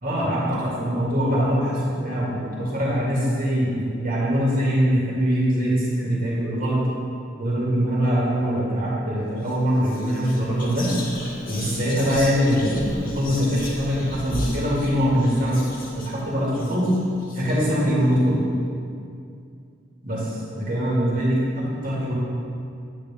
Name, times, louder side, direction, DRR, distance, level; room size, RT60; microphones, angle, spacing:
voice 1, 0.0-6.8 7.4-10.9 11.5-15.6 15.9-16.9 17.3-18.4 20.0-22.1, equal, 45° right, -6 dB, 2.3 m, -23 dB
Whispering, 9.4-9.6 9.8-17.9, left 1 dB, 45° left, 1.6 m, -36 dB
10.0 x 8.8 x 3.6 m, 2.4 s
head